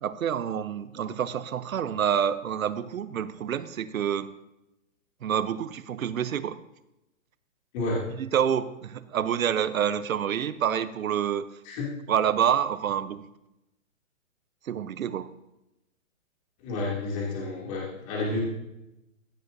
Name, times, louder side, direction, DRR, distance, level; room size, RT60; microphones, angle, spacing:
voice 1, 0.0-4.4 5.2-6.6 8.1-11.5 12.1-13.3 14.7-15.3, right 9 dB, 80° right, 13 dB, 0.9 m, -27 dB
voice 2, 16.6-18.4, left 2 dB, 25° left, -4 dB, 2.7 m, -30 dB
15.5 x 10.5 x 2.7 m, 0.90 s
hypercardioid pair, 165°, 40 cm